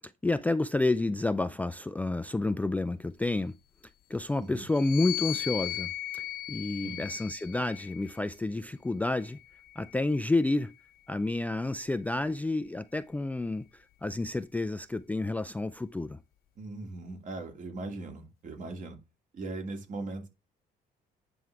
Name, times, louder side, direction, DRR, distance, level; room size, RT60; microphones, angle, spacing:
voice 1, 0.2-3.5 4.1-6.2 6.5-9.4 9.8-10.7 11.1-16.2, left 2 dB, 10° left, 0.4 m, -30 dB
sound 1, 4.7-8.3 9.1-10.7, left 14 dB, 60° left, 0.9 m, -38 dB
voice 2, 16.6-19.0 19.3-20.3, right 2 dB, 50° right, 2.5 m, -39 dB
9.4 x 6.1 x 3.4 m
cardioid pair, 110°, 17 cm